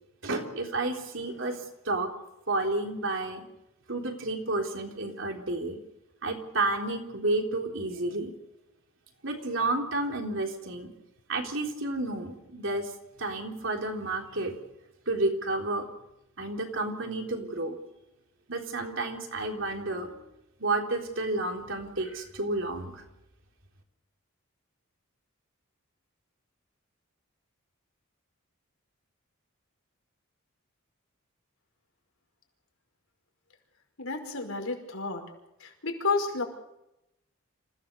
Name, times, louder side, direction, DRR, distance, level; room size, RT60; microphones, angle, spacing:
voice 1, 0.2-2.1 2.5-3.4 3.9-5.8 6.2-8.3 9.2-10.9 11.3-12.9 13.2-14.6 15.1-15.9 16.4-17.8 18.5-20.2 20.6-23.0, right 2 dB, 60° right, 2 dB, 3.8 m, -31 dB
voice 2, 34.0-35.2 35.6-36.4, left 3 dB, 75° left, 3 dB, 5.3 m, -31 dB
27.5 x 16.5 x 6.9 m, 0.90 s
head